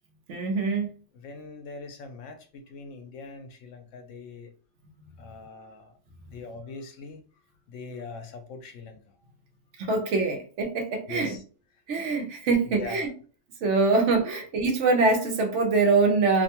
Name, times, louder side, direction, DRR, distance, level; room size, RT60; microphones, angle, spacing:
voice 1, 0.3-0.9 9.8-11.4 11.9-13.1 13.6-16.4, right 3 dB, 70° right, 0.9 m, -24 dB
voice 2, 1.1-4.5 5.2-6.0 6.3-7.2 7.7-9.2 11.1-11.4 12.6-13.1, left 4 dB, 75° left, 0.9 m, -42 dB
2.6 x 2.2 x 2.7 m
omnidirectional pair, 1.3 m